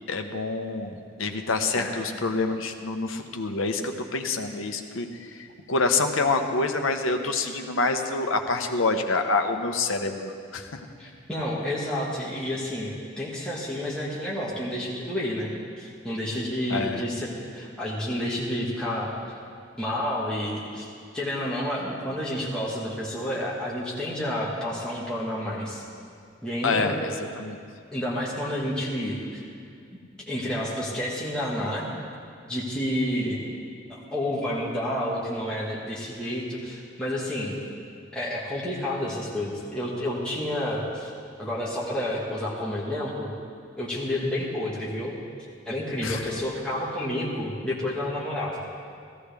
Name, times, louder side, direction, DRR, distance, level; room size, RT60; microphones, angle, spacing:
voice 1, 0.1-10.8 16.7-17.0 26.6-26.9 27.3-27.6 46.0-46.2, left 3 dB, 80° left, 5 dB, 0.9 m, -27 dB
voice 2, 11.0-19.1 19.8-25.8 26.4-27.0 27.9-29.4 29.9-30.0 30.3-31.9 32.5-33.4 33.9-37.6 38.1-41.1 41.4-43.3 43.8-45.2 45.6-48.6, left 1 dB, 5° left, -7 dB, 1.6 m, -30 dB
16.0 x 15.0 x 3.5 m, 2.3 s
head